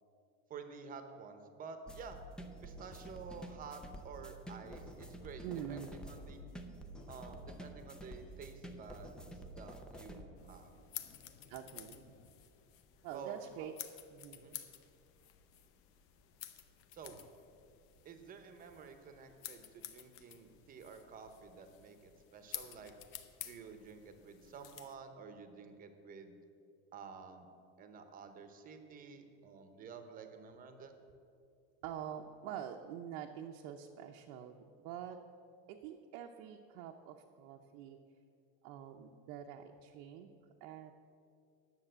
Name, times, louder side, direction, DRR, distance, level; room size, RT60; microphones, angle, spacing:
voice 1, 0.5-2.2 2.6-5.4 5.7-6.4 7.1-10.7 13.1-13.7 14.3-14.6 16.9-17.2 18.0-22.9 23.4-26.3 26.9-27.5 27.8-30.9, right 5 dB, 25° right, 8 dB, 0.8 m, -51 dB
sound 1, 1.9-10.2, right 1 dB, 5° left, 0.3 m, -50 dB
sound 2, 4.6-12.3, left 4 dB, 70° left, 1.3 m, -62 dB
voice 2, 5.4-6.0 11.5-12.1 13.0-13.7 14.1-14.4 31.8-35.2 35.7-38.0 38.6-40.3 40.6-40.9, right 9 dB, 70° right, 2 dB, 0.7 m, -46 dB
sound 3, 10.4-24.9, left 11 dB, 45° left, 0.7 m, -52 dB
10.0 x 7.2 x 7.8 m, 2.4 s
cardioid pair, 175°, 32 cm